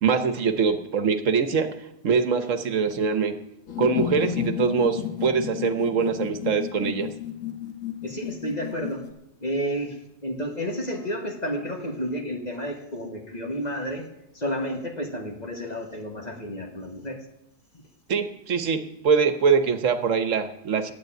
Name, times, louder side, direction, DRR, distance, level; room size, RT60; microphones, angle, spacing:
voice 1, 0.0-1.7 2.0-3.4 3.8-7.1 18.1-20.9, right 5 dB, 70° right, 8 dB, 1.3 m, -23 dB
sound 1, 3.7-9.1, left 10 dB, 70° left, 1.5 m, -32 dB
voice 2, 8.0-9.1 9.4-14.1 14.3-17.2, equal, 30° left, 3 dB, 1.6 m, -31 dB
11.0 x 8.7 x 9.0 m, 0.83 s
omnidirectional pair, 1.4 m